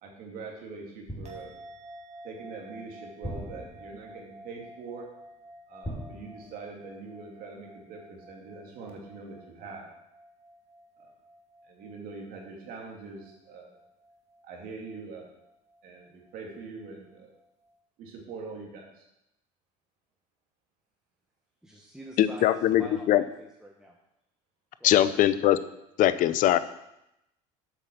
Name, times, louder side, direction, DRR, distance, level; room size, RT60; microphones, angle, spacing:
voice 1, 0.0-1.6 2.2-5.0 5.7-9.8 11.0-11.1 11.7-13.7 14.4-15.3 15.8-17.3 18.0-19.0, right 4 dB, 60° right, 0 dB, 2.6 m, -43 dB
sound 1, 1.1-1.8 3.2-4.2 5.8-6.9 7.2-7.5, equal, 15° left, 2.8 m, -41 dB
sound 2, 1.2-17.8, right 1 dB, 40° right, 2.2 m, -52 dB
voice 2, 21.6-23.9 24.8-25.0, right 1 dB, 5° right, -1 dB, 1.3 m, -46 dB
voice 3, 22.2-23.2 24.8-25.6 26.0-26.6, left 12 dB, 55° left, 14 dB, 0.6 m, -21 dB
8.1 x 5.8 x 6.5 m, 0.86 s
supercardioid pair, 95°, 16 cm